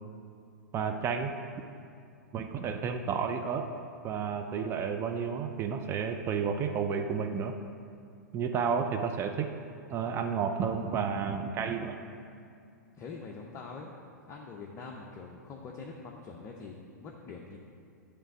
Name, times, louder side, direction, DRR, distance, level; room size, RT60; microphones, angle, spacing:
voice 1, 0.7-1.3 2.3-3.7 4.0-7.5 8.3-9.5 9.9-12.0, right 6 dB, 25° right, 5 dB, 0.4 m, -31 dB
voice 2, 13.0-13.9 14.3-16.7 17.0-17.6, left 4 dB, 30° left, 0 dB, 0.6 m, -44 dB
8.8 x 3.3 x 6.1 m, 2.4 s
figure-of-eight pair, 105°, 10 cm